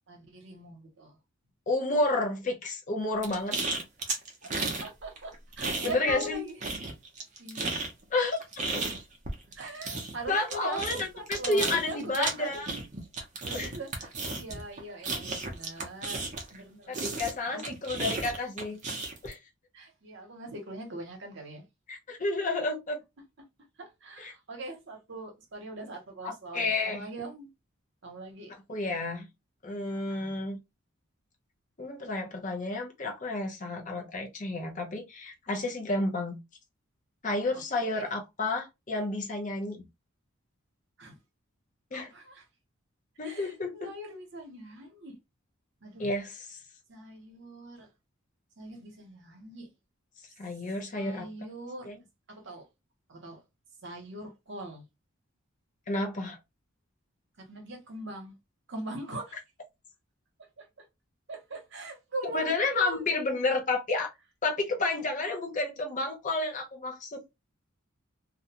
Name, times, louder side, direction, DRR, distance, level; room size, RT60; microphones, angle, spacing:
voice 1, 0.1-1.2 4.4-6.6 7.4-7.8 9.6-12.6 13.4-17.1 17.5-17.7 19.7-21.6 23.8-27.5 28.0-28.6 29.9-30.4 37.5-37.6 37.9-38.1 41.0-41.2 41.9-42.4 43.2-45.1 45.8-46.1 46.9-47.9 48.6-49.7 50.9-51.9 52.3-52.7 53.1-53.4 53.8-54.8 57.4-58.4 58.7-59.4 60.6-60.8 61.3-63.1, right 2 dB, 60° right, 0.9 m, -41 dB
voice 2, 1.7-3.6 5.8-6.4 8.1-8.4 8.7-8.8 10.3-10.9 11.3-12.8 13.5-13.7 16.9-18.8 19.2-19.4 21.9-23.0 24.2-24.3 26.2-27.0 28.7-29.3 29.6-30.6 31.8-36.4 37.2-39.8 41.9-42.1 43.2-43.9 46.0-46.6 50.4-51.3 51.8-51.9 55.9-56.4 62.3-64.1 64.4-67.2, left 2 dB, 35° left, 0.6 m, -30 dB
sound 1, 3.2-4.9 5.2-6.3 6.6-16.6 16.9-19.3, right 3 dB, 35° right, 0.6 m, -34 dB
2.5 x 2.2 x 2.8 m
head